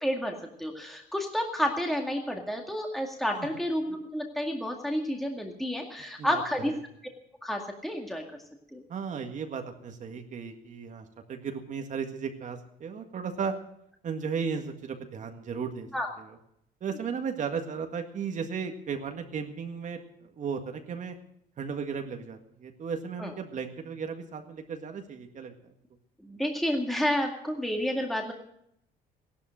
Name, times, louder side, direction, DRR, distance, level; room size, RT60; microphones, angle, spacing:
voice 1, 0.0-6.7 7.4-8.2 8.7-8.8 15.9-16.1 23.2-23.3 26.2-28.3, equal, ahead, 1 dB, 2.1 m, -30 dB
voice 2, 8.9-13.5 14.0-15.9 16.2-16.4 16.8-20.0 20.4-21.2 21.6-25.5, right 6 dB, 50° right, 5 dB, 1.8 m, -35 dB
16.0 x 12.0 x 6.4 m, 0.75 s
cardioid pair, 110°, 17 cm